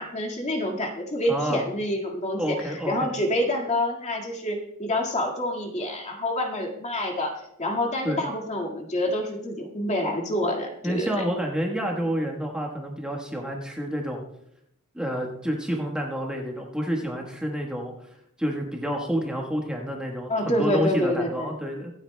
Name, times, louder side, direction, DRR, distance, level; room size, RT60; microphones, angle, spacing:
voice 1, 0.0-11.2 20.3-21.5, left 1 dB, 35° left, 1 dB, 1.9 m, -27 dB
voice 2, 1.3-1.6 2.4-3.1 8.0-8.2 10.8-14.2 14.9-17.9 18.4-21.9, equal, 5° right, 0 dB, 1.3 m, -29 dB
25.0 x 8.5 x 2.2 m, 0.77 s
head